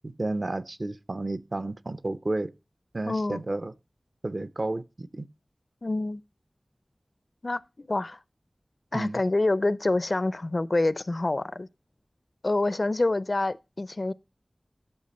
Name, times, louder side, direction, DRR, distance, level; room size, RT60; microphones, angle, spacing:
voice 1, 0.0-2.5 2.9-3.7 4.2-5.3 8.9-9.2, right 2 dB, 50° right, 0.6 m, -31 dB
voice 2, 3.0-3.4 5.8-6.2 7.4-8.2 8.9-11.7 12.4-14.1, left 2 dB, 50° left, 0.4 m, -27 dB
12.5 x 5.8 x 4.2 m
wide cardioid pair, 55°, 0 cm